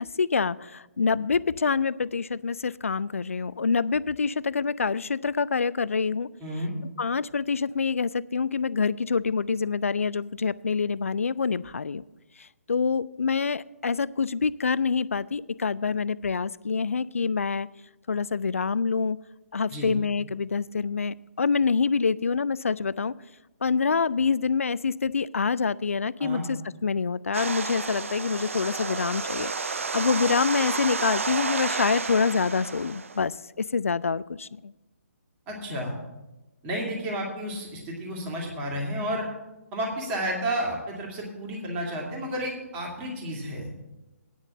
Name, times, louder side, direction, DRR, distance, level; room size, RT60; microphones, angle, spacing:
voice 1, 0.0-6.3 7.0-12.0 12.4-17.7 18.1-19.2 19.5-23.1 23.6-34.7, left 5 dB, 60° left, 20 dB, 0.4 m, -26 dB
voice 2, 6.4-6.7 19.7-19.9 26.2-26.4 35.5-35.9 36.6-39.3 39.7-43.7, equal, 15° right, -1 dB, 2.3 m, -31 dB
sound 1, 27.3-33.2, right 4 dB, 55° right, 0.6 m, -31 dB
9.6 x 6.4 x 8.6 m, 1.0 s
figure-of-eight pair, 140°, 8 cm